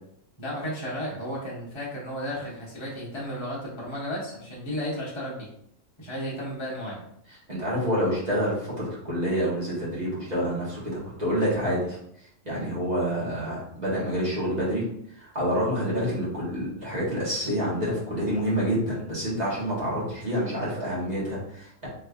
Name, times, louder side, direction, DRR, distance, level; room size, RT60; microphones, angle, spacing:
voice 1, 0.4-5.5 6.0-7.0, equal, 25° left, -6 dB, 1.1 m, -33 dB
voice 2, 7.5-12.0 12.4-14.8 15.2-21.9, equal, 35° right, -8 dB, 1.3 m, -27 dB
3.4 x 3.1 x 2.4 m, 0.72 s
omnidirectional pair, 1.4 m